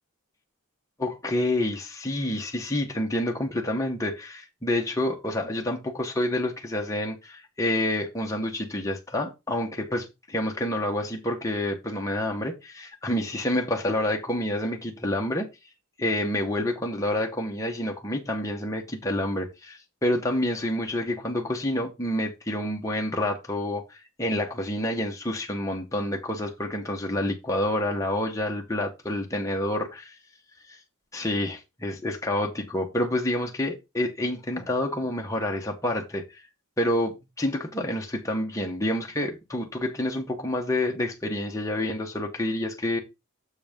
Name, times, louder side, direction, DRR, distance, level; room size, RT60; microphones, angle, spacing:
voice 1, 1.0-15.5 16.0-30.0 30.7-30.8 31.1-36.4 36.8-43.0, left 1 dB, 15° left, 1.3 m, -28 dB
7.4 x 4.0 x 5.3 m
head